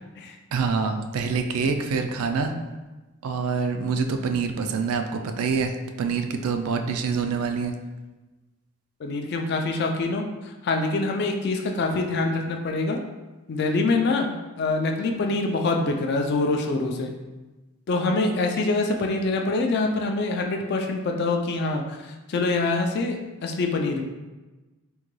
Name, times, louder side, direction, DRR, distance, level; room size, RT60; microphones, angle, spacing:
voice 1, 0.5-2.5 3.2-7.7, right 5 dB, 75° right, 6 dB, 0.3 m, -26 dB
voice 2, 9.0-13.0 13.5-17.1 17.9-24.0, left 3 dB, 50° left, 3 dB, 0.3 m, -25 dB
3.7 x 2.2 x 3.0 m, 1.2 s
head